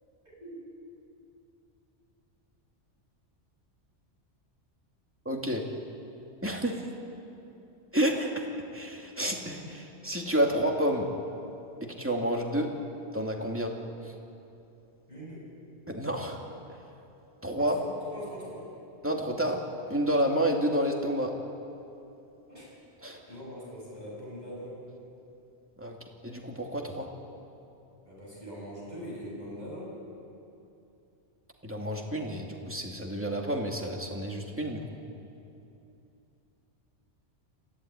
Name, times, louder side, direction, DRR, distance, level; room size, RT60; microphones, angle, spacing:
voice 1, 0.3-0.6 15.1-15.4 17.6-18.7 22.5-22.7 23.3-24.8 28.0-29.9, equal, 40° right, -4 dB, 7.8 m, -42 dB
voice 2, 5.2-5.6 6.4-6.8 7.9-8.5 8.7-11.1 11.8-12.7 13.1-13.7 15.9-16.4 16.7-16.8 17.4-17.8 19.0-19.6 19.9-21.3 23.0-23.2 25.8-26.0 26.2-27.1 31.6-34.8, equal, 10° right, 0 dB, 2.5 m, -29 dB
26.0 x 15.0 x 9.8 m, 2.7 s
omnidirectional pair, 1.2 m